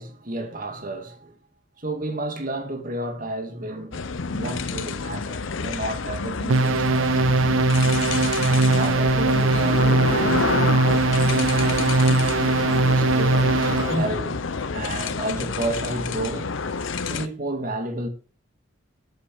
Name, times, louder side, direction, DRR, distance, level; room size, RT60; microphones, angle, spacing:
voice 1, 0.0-1.4 1.8-4.0 4.3-7.7 8.4-14.5 14.7-16.5 17.1-18.1, right 2 dB, 40° right, 2.2 m, -32 dB
sound 1, 3.9-17.3, left 4 dB, 70° left, 0.8 m, -28 dB
sound 2, 6.5-14.1, right 2 dB, 75° right, 0.6 m, -20 dB
sound 3, 9.1-13.5, equal, 35° left, 2.9 m, -42 dB
14.5 x 8.1 x 4.8 m
head